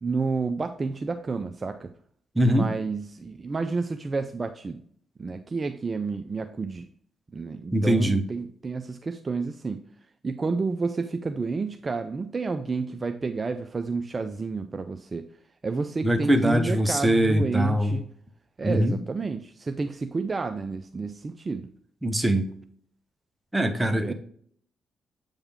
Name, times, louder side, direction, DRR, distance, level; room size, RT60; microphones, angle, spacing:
voice 1, 0.0-1.9 2.4-4.8 5.2-6.8 7.3-9.8 10.2-15.3 15.6-18.1 18.6-21.7 23.9-24.1, right 4 dB, 35° right, 8 dB, 0.4 m, -30 dB
voice 2, 2.4-2.7 7.7-8.2 16.0-18.0 18.6-19.0 22.0-22.4 23.5-24.1, equal, 10° right, 8 dB, 1.0 m, -22 dB
8.1 x 3.5 x 3.6 m, 0.62 s
supercardioid pair, 60°, 0 cm